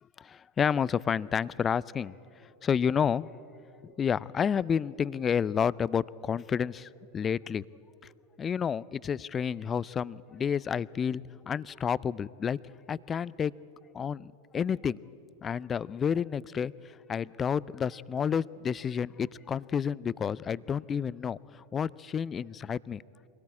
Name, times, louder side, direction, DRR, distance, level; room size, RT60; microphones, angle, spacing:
voice 1, 0.2-3.3 3.8-7.6 8.0-8.1 8.4-12.6 12.9-13.5 13.9-15.0 15.4-23.0, left 7 dB, 25° left, 22 dB, 0.4 m, -30 dB
23.0 x 17.5 x 8.5 m, 2.8 s
figure-of-eight pair, 90°, 0 cm